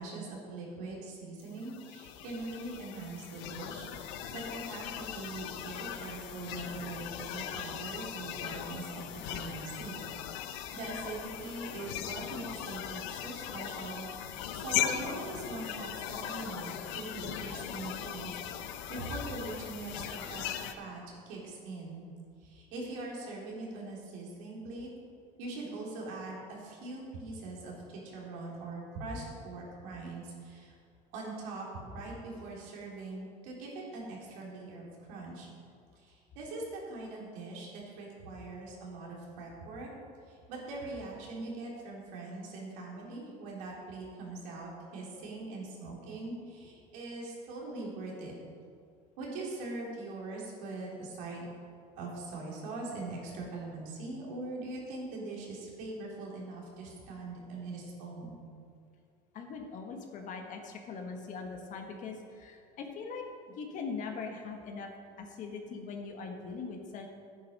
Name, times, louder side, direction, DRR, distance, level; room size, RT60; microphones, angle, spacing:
voice 1, 0.0-10.0 10.7-18.3 18.6-20.5 20.8-22.0 22.4-24.9 25.4-30.7 31.1-31.7 31.9-35.5 36.0-39.9 40.3-48.3 49.2-51.5 52.0-58.4, right 2 dB, 85° right, -3 dB, 3.1 m, -42 dB
sound 1, 1.6-20.7, left 10 dB, 85° left, 0.7 m, -39 dB
voice 2, 59.3-64.9 65.2-67.1, left 4 dB, 50° left, 3 dB, 1.4 m, -41 dB
9.5 x 8.8 x 5.3 m, 2.2 s
cardioid pair, 120°, 16 cm